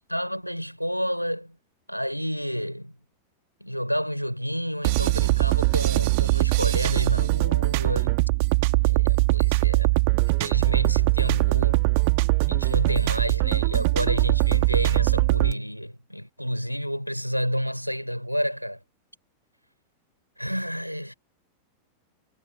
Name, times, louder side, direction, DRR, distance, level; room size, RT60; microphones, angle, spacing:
voice 1, 0.0-1.6 1.9-3.0 3.6-8.2 8.8-10.0 10.4-11.9 12.5-18.8 20.4-21.1, equal, 90° left, 3.8 m, -30 dB
sound 1, 4.8-15.5, right 28 dB, 45° right, 1.5 m, -22 dB
figure-of-eight pair, 90°, 0 cm